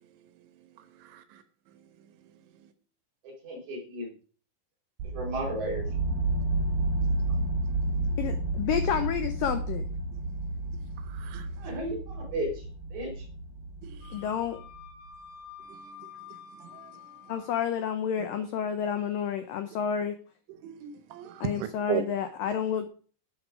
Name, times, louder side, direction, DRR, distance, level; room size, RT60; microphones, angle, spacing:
voice 1, 1.0-1.4 7.9-8.2 11.1-11.8 13.8-14.2 15.7-15.8 16.6-16.9 20.6-22.0, right 11 dB, 80° right, 3.5 m, -37 dB
voice 2, 3.2-4.1 5.0-5.8 11.6-13.3, right 1 dB, 40° right, 5.4 m, -34 dB
sound 1, 5.0-14.8, right 2 dB, 60° right, 4.0 m, -31 dB
voice 3, 8.2-9.9 14.1-14.6 17.3-20.2 21.4-22.9, left 8 dB, 90° left, 1.9 m, -30 dB
Wind instrument woodwind instrument, 14.0-17.6, left 7 dB, 65° left, 4.2 m, -48 dB
10.5 x 9.0 x 4.9 m
omnidirectional pair, 5.3 m